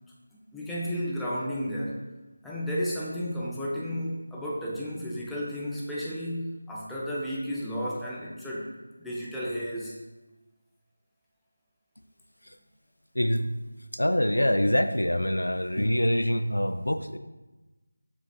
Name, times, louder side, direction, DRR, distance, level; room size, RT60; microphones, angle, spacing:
voice 1, 0.5-2.0 2.4-8.7 9.0-9.9, equal, ahead, -8 dB, 0.4 m, -32 dB
voice 2, 13.2-13.5 13.9-17.2, equal, 85° left, 9 dB, 0.3 m, -25 dB
6.5 x 3.4 x 2.3 m, 1.1 s
figure-of-eight pair, 165°, 0 cm